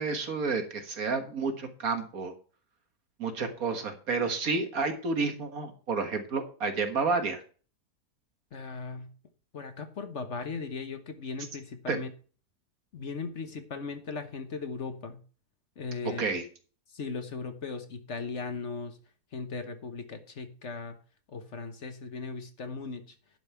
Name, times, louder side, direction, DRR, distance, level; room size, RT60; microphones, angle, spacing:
voice 1, 0.0-2.3 3.2-7.4 11.9-12.0 16.2-16.4, right 4 dB, 65° right, 6 dB, 1.9 m, -30 dB
voice 2, 8.5-9.1 9.5-12.1 12.9-15.2 15.8-16.3 16.9-19.0 19.3-21.0 21.3-23.1, left 4 dB, 50° left, 8 dB, 1.3 m, -38 dB
10.5 x 5.4 x 6.8 m, 0.39 s
omnidirectional pair, 1.7 m